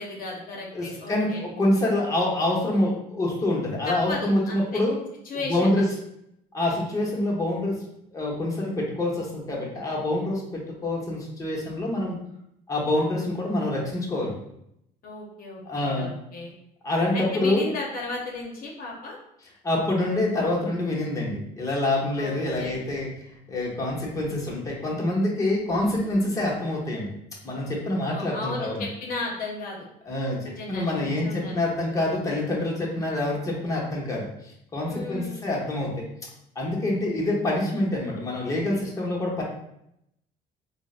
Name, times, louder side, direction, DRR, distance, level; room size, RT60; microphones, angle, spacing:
voice 1, 0.0-1.5 3.9-4.8 5.2-5.8 15.0-16.5 17.1-19.2 22.2-22.8 28.0-29.9 30.3-31.6 34.9-35.4, left 2 dB, 60° left, -2 dB, 0.7 m, -35 dB
voice 2, 0.7-5.0 5.3-5.8 6.5-7.8 8.1-12.2 12.7-14.3 15.7-16.1 16.8-17.6 19.6-27.1 27.4-28.8 30.1-30.4 30.7-36.1 36.6-39.4, left 1 dB, 20° left, -3 dB, 0.8 m, -26 dB
3.8 x 2.0 x 2.3 m, 0.79 s
cardioid pair, 110°, 17 cm